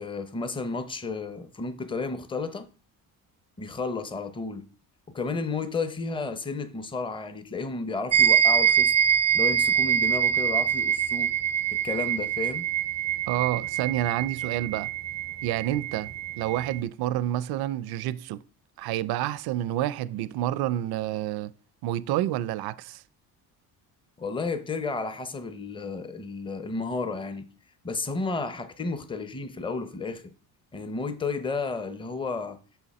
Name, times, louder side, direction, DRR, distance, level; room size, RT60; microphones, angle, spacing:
voice 1, 0.0-2.7 3.6-4.6 5.1-8.9 9.3-11.3 11.7-12.7 24.2-27.5 27.8-30.3 30.7-32.6, left 4 dB, 15° left, 0.6 m, -32 dB
sound 1, 8.1-16.8, right 8 dB, 20° right, 0.3 m, -25 dB
voice 2, 13.3-14.9 15.4-16.1 16.4-18.4 18.8-21.5 21.8-23.0, right 13 dB, 70° right, 0.5 m, -28 dB
6.2 x 5.7 x 4.1 m
cardioid pair, 125°, 39 cm